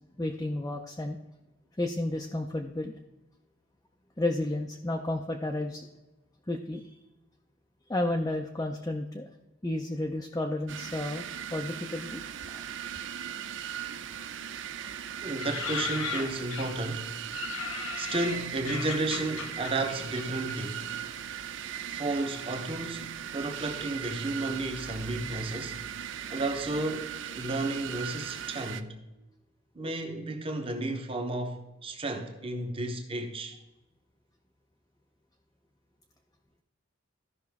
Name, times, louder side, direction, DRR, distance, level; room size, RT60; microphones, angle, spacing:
voice 1, 0.2-1.2 1.8-3.0 4.2-5.9 6.5-6.9 7.9-9.3 9.6-11.2 11.5-12.2 12.5-12.6, left 1 dB, 15° left, 0.5 m, -32 dB
sound 1, 10.7-28.8, right 9 dB, 60° right, 0.5 m, -39 dB
voice 2, 15.2-17.1 18.0-20.9 21.9-25.8 26.3-29.0 29.7-33.5, right 2 dB, 25° right, 1.0 m, -33 dB
sound 2, 15.4-16.9 17.3-21.2 21.4-22.3 23.0-23.5 23.8-23.9 24.1-26.4 26.7-26.8, left 4 dB, 85° left, 1.2 m, -38 dB
14.0 x 5.6 x 3.5 m
head